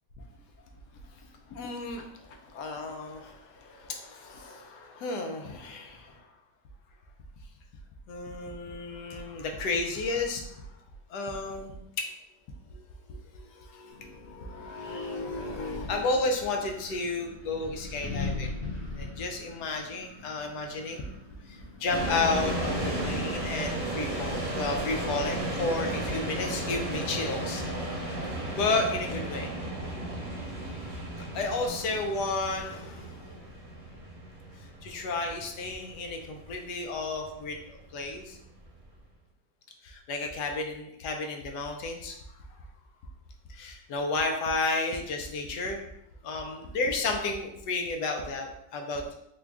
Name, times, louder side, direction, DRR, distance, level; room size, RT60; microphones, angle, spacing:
voice 1, 1.5-6.2 8.1-10.4 11.1-11.8 12.7-12.8 13.1-18.5 19.0-21.1 21.5-27.6 28.6-29.5 31.2-33.4 34.8-38.4 39.8-42.2 43.5-45.8 46.2-49.1, left 3 dB, 75° left, 3 dB, 1.1 m, -32 dB
Wind, 13.9-23.9, left 3 dB, 40° left, 1.0 m, -41 dB
sound 1, 21.8-38.8, right 1 dB, 35° right, 0.9 m, -34 dB
3.8 x 2.2 x 3.5 m, 0.79 s
omnidirectional pair, 1.9 m